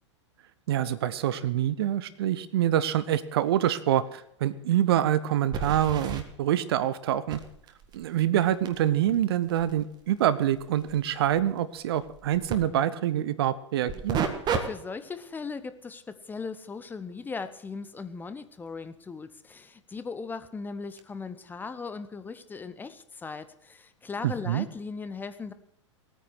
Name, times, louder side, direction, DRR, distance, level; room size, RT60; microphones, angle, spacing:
voice 1, 0.7-7.4 7.9-14.3 24.2-24.7, right 11 dB, 55° right, 15 dB, 0.9 m, -26 dB
sound 1, 5.5-6.2 7.3-12.6 13.9-14.6 15.1-15.3 20.0-20.1 21.0-21.1, right 6 dB, 25° right, 1.7 m, -34 dB
voice 2, 14.6-25.5, left 4 dB, 10° left, 12 dB, 0.8 m, -38 dB
18.5 x 9.3 x 6.4 m, 0.74 s
figure-of-eight pair, 95°, 16 cm